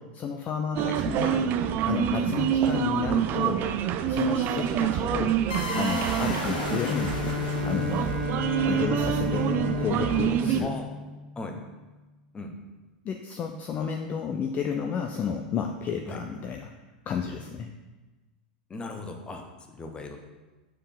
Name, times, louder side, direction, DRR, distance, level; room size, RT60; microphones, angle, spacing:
voice 1, 0.0-1.5 1.8-3.7 4.1-5.4 5.7-7.2 7.6-8.1 8.7-10.7 13.0-16.7 17.1-17.7, left 7 dB, 35° left, 4 dB, 0.6 m, -31 dB
sound 1, 0.7-10.6, right 10 dB, 45° right, 0.4 m, -27 dB
sound 2, 5.5-8.6, left 3 dB, 80° left, 1.2 m, -35 dB
Bowed string instrument, 6.3-11.5, left 3 dB, 90° right, 1.5 m, -32 dB
voice 2, 18.7-19.4 19.7-20.2, left 2 dB, 20° left, 4 dB, 1.0 m, -37 dB
6.4 x 5.2 x 3.9 m, 1.2 s
hypercardioid pair, 100°, 5 cm